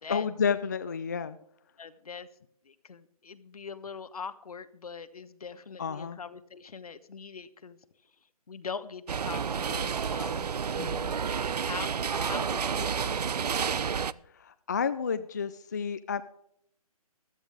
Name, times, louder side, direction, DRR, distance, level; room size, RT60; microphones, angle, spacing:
voice 1, 0.1-1.4 5.8-6.2 10.8-11.1 14.3-16.2, left 6 dB, 30° left, 12 dB, 0.4 m, -31 dB
voice 2, 1.8-2.3 2.6-7.8 8.5-10.5 11.5-13.4, left 5 dB, 70° left, 13 dB, 1.2 m, -42 dB
sound 1, 9.1-14.1, right 6 dB, 90° right, 0.6 m, -30 dB
15.5 x 12.5 x 3.3 m, 0.72 s
hypercardioid pair, 165°, 20 cm